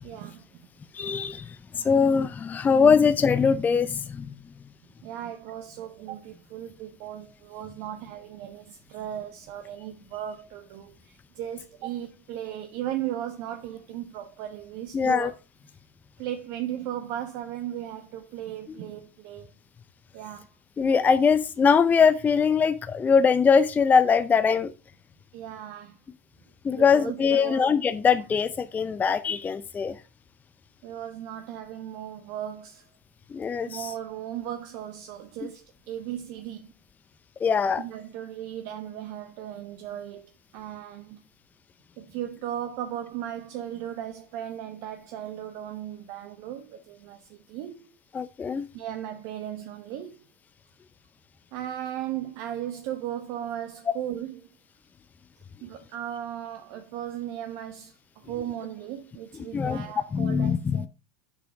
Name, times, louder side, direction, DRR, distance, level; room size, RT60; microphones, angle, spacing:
voice 1, 0.0-0.6 5.0-15.3 16.2-19.5 20.1-20.5 25.3-26.0 26.7-27.6 30.8-32.9 33.7-36.7 37.8-40.2 40.5-41.2 42.0-47.9 48.7-50.2 51.5-54.4 55.6-60.9, right 11 dB, 55° right, 0.8 m, -36 dB
voice 2, 0.9-1.5 1.7-4.3 14.9-15.3 20.8-24.7 26.6-30.0 33.3-33.9 37.4-37.8 48.1-48.7 59.5-59.8 60.1-60.9, left 6 dB, 20° left, 0.5 m, -22 dB
6.8 x 4.8 x 4.8 m
hypercardioid pair, 90°, 9 cm